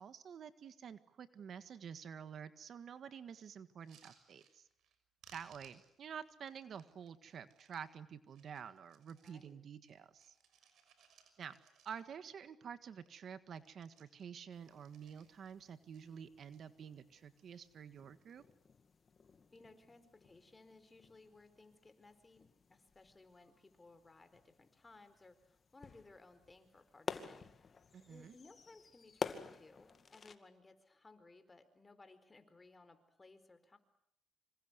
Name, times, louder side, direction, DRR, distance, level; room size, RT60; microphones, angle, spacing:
voice 1, 0.0-4.7 5.3-10.3 11.4-11.6 11.8-18.4 27.9-28.3, right 7 dB, 60° right, 11 dB, 1.7 m, -49 dB
sound 1, 3.7-5.0 5.2-7.8 8.3-9.5 9.8-12.3 12.6-12.7 13.0-13.3 13.5-15.6 15.9-16.6 17.2-17.7 17.9-18.5 19.3-19.6, right 7 dB, 75° right, 6.1 m, -67 dB
voice 2, 9.2-9.7 19.5-27.5 28.1-33.8, left 3 dB, 25° left, 10 dB, 4.5 m, -61 dB
sound 2, 14.5-30.4, left 5 dB, 40° left, 2.3 m, -51 dB
26.5 x 26.5 x 8.1 m, 0.74 s
cardioid pair, 90°, 0 cm